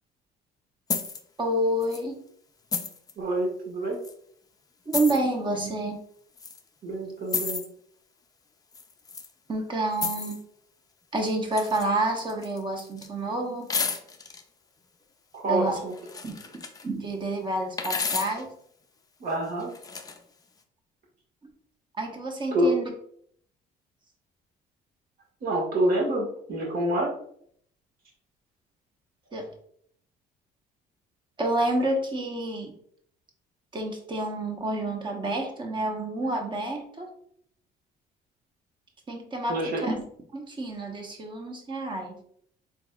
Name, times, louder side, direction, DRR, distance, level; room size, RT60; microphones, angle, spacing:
sound 1, 0.9-1.2 1.8-2.0 2.7-3.1 4.0-4.1 4.9-5.2 6.4-6.6 7.3-7.7 8.7-9.3 9.9-10.4 11.5-11.9 12.2-13.1 13.7-14.4 15.7-16.9 17.8-18.4 19.6-20.2, left 5 dB, 20° left, 0.4 m, -32 dB
voice 1, 1.4-2.2 4.9-6.0 9.5-10.4 11.1-13.7 15.4-15.8 16.2-16.3 16.8-18.5 22.0-22.9 29.3-29.5 31.4-32.7 33.7-37.1 39.1-40.0 40.3-42.2, right 1 dB, 30° right, 3 dB, 0.9 m, -29 dB
voice 2, 3.2-4.0 6.8-7.6 15.3-15.9 19.2-19.7 22.5-22.7 25.4-27.1 39.5-39.8, right 1 dB, 60° right, -2 dB, 1.5 m, -27 dB
3.9 x 3.6 x 2.3 m, 0.65 s
cardioid pair, 110°, 17 cm